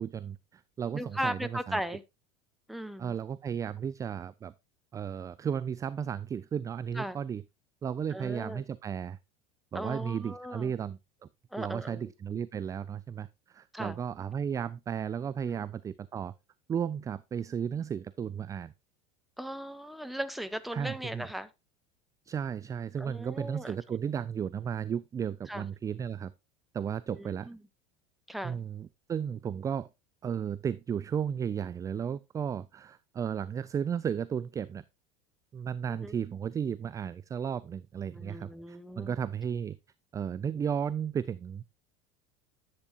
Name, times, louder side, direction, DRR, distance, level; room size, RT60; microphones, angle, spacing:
voice 1, 0.0-1.8 3.0-4.5 4.9-7.4 7.8-9.2 9.7-11.3 11.6-16.3 16.7-18.7 20.7-21.3 22.3-26.3 26.7-27.5 28.4-29.9 30.2-34.8 35.5-39.8 40.1-41.8, right 8 dB, 20° right, 0.3 m, -34 dB
voice 2, 0.9-2.0 2.7-3.2 6.9-7.2 8.1-8.6 9.7-10.7 11.5-12.1 13.7-14.0 15.4-15.6 19.4-21.5 23.0-23.8 25.5-25.7 27.1-27.6 28.3-28.6 35.9-36.2 38.1-39.1, equal, ahead, 0.8 m, -37 dB
10.5 x 8.1 x 2.3 m
figure-of-eight pair, 75°, 18 cm